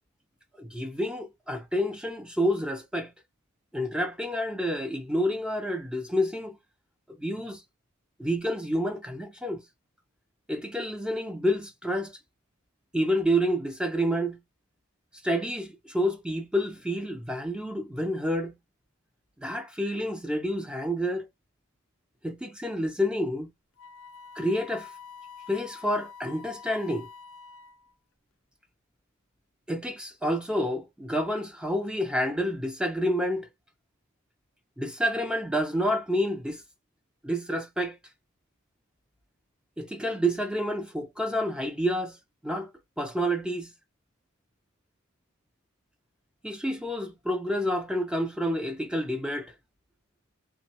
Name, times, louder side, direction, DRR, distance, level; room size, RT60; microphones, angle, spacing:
voice 1, 0.6-3.1 3.7-6.6 7.2-7.6 8.2-9.6 10.5-12.1 12.9-14.4 15.2-18.5 19.4-21.3 22.2-23.5 24.4-24.9 25.5-27.1 29.7-33.5 34.8-36.6 37.2-38.0 39.8-42.2 42.4-42.7 43.0-43.7 46.4-49.5, equal, 5° right, 0.4 m, -29 dB
Wind instrument woodwind instrument, 23.8-27.9, left 6 dB, 60° left, 0.4 m, -46 dB
2.9 x 2.2 x 2.7 m
head